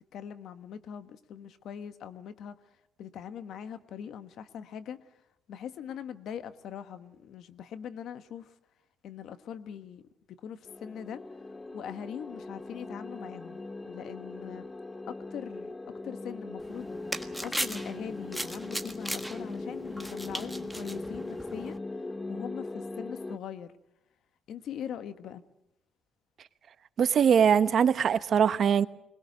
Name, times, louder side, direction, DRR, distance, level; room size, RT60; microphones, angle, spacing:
voice 1, 0.1-2.6 3.0-5.0 5.5-8.5 9.0-10.0 10.3-11.2 11.7-14.7 15.1-15.7 16.0-17.0 17.4-21.8 22.3-23.7 24.5-25.4, left 8 dB, 75° left, 1.3 m, -41 dB
sound 1, 10.6-23.4, left 2 dB, 20° left, 0.9 m, -40 dB
sound 2, 16.6-21.8, right 1 dB, ahead, 1.6 m, -38 dB
voice 2, 27.0-28.9, right 7 dB, 60° right, 1.0 m, -22 dB
22.0 x 20.0 x 8.1 m
cardioid pair, 90°, 0 cm